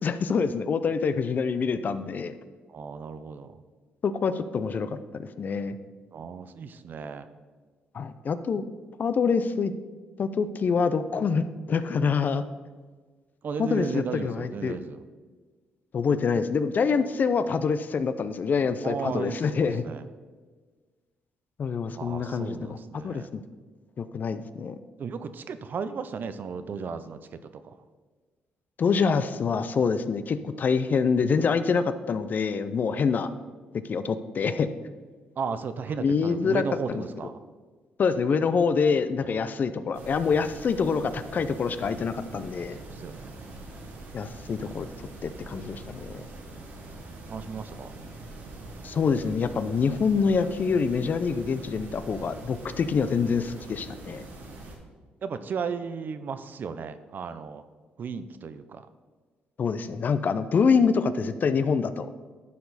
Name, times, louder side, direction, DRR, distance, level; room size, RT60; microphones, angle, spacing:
voice 1, 0.0-2.3 4.0-5.8 7.9-8.6 9.0-9.7 10.2-12.4 13.6-14.8 15.9-19.8 21.6-22.8 23.0-23.4 24.0-24.8 28.8-33.3 33.9-34.7 36.0-36.6 36.9-37.0 38.0-42.8 44.1-46.2 48.8-54.2 59.6-62.1, left 5 dB, 50° left, 12 dB, 0.5 m, -26 dB
voice 2, 2.7-3.5 6.1-7.3 13.4-15.0 18.8-20.0 22.0-23.3 25.0-27.8 35.4-37.4 39.2-39.5 42.8-43.3 47.3-47.9 55.2-57.6 58.0-58.9, right 5 dB, 55° right, 11 dB, 0.6 m, -35 dB
sound 1, 39.9-54.7, right 2 dB, 75° right, 1.8 m, -43 dB
11.5 x 4.8 x 4.1 m, 1.4 s
supercardioid pair, 70°, 4 cm